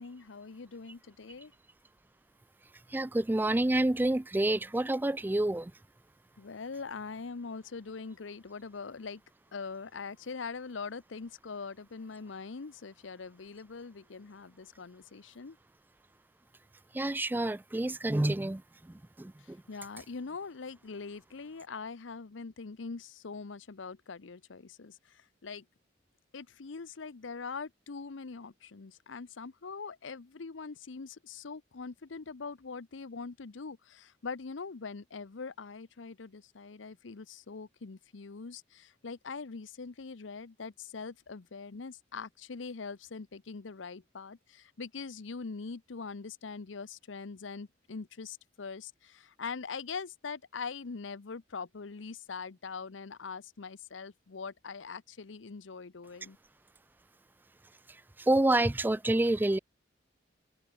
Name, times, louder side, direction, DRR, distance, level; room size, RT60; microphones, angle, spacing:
voice 1, 0.0-1.5 6.4-9.2 9.5-15.6 19.4-25.6 26.3-56.4, left 4 dB, 85° left, 0.7 m, -42 dB
voice 2, 2.9-5.7 16.9-18.6 19.2-19.6 58.2-59.6, right 1 dB, 10° right, 0.3 m, -28 dB
open air
head